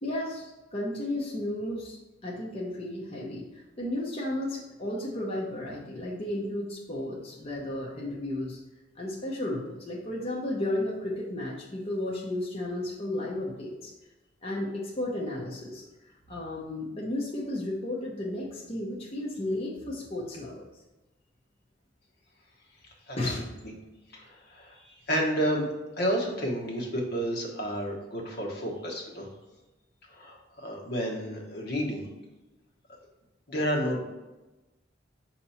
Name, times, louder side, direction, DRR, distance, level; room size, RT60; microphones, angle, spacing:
voice 1, 0.0-2.0 2.2-8.6 8.9-13.9 14.4-15.8 16.3-20.6 23.2-23.4, left 1 dB, 35° left, -4 dB, 0.9 m, -33 dB
voice 2, 24.1-25.7 26.0-29.3 30.1-32.1 33.5-34.0, equal, 60° left, -1 dB, 1.2 m, -31 dB
5.9 x 2.9 x 5.5 m, 1.1 s
head